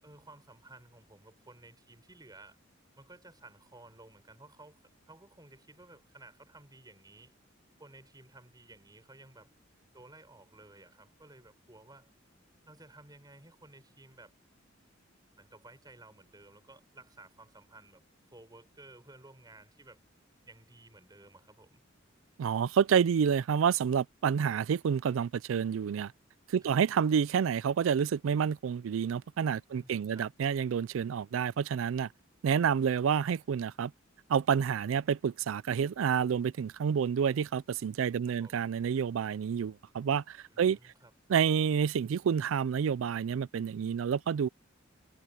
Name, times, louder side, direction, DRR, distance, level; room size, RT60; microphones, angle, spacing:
voice 1, 0.0-2.6 3.0-7.3 7.8-9.5 9.9-12.1 12.7-14.3 15.4-18.0 18.3-20.0 20.5-21.8 26.6-26.8 29.7-30.3 38.2-38.6 40.5-41.1, right 2 dB, 20° right, 7.0 m, -55 dB
voice 2, 22.4-26.1 26.5-32.1 32.4-33.9 34.3-40.8 41.3-44.5, right 7 dB, 80° right, 0.4 m, -29 dB
head